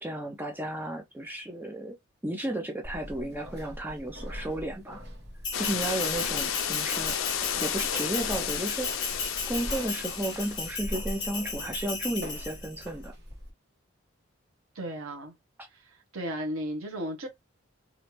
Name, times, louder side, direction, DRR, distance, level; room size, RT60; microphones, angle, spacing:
voice 1, 0.0-1.9 2.2-5.0 5.6-9.1 9.5-13.1, right 1 dB, 10° right, 0.5 m, -34 dB
sound 1, 2.8-13.5, equal, 50° right, 1.2 m, -42 dB
Bell, 5.4-12.9, left 4 dB, 20° left, 0.8 m, -36 dB
sound 2, 5.5-10.8, left 10 dB, 70° left, 0.4 m, -32 dB
voice 2, 14.7-15.3 15.7-15.8 16.1-17.3, equal, 90° right, 0.9 m, -34 dB
3.1 x 2.4 x 2.9 m
head